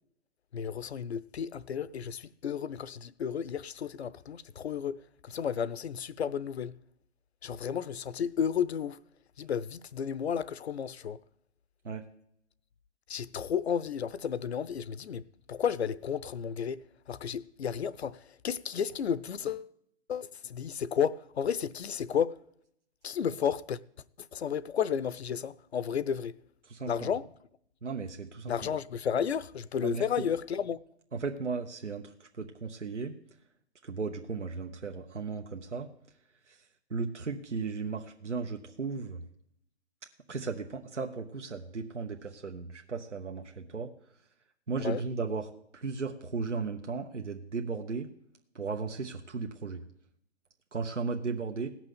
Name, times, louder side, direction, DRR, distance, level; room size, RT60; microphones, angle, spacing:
voice 1, 0.5-6.8 7.4-9.0 9.4-11.2 13.1-19.7 20.1-22.4 23.0-23.8 24.3-26.4 26.9-27.3 28.5-30.8 44.8-45.0, left 8 dB, 65° left, 0.7 m, -32 dB
voice 2, 26.6-27.1 27.8-28.5 29.8-30.0 31.1-33.1 33.8-35.9 36.5-36.6 36.9-39.2 40.3-43.9 44.7-48.1 48.5-49.8 50.7-51.7, right 4 dB, 90° right, 1.2 m, -35 dB
16.5 x 6.1 x 9.3 m
figure-of-eight pair, 140°, 35 cm